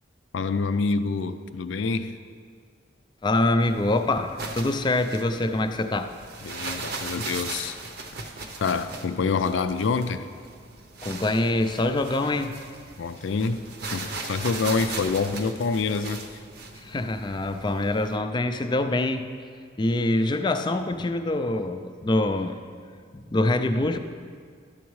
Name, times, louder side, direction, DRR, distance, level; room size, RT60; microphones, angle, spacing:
voice 1, 0.3-2.1 6.4-7.8 8.6-10.2 13.0-13.6 13.9-16.2, left 4 dB, 90° left, 11 dB, 0.4 m, -26 dB
voice 2, 3.2-6.1 11.0-12.5 16.7-19.3 19.8-22.6 23.1-24.0, left 2 dB, 25° left, 8 dB, 0.4 m, -25 dB
sound 1, 3.6-18.2, right 3 dB, 55° right, 0.7 m, -38 dB
12.0 x 7.1 x 3.1 m, 2.1 s
head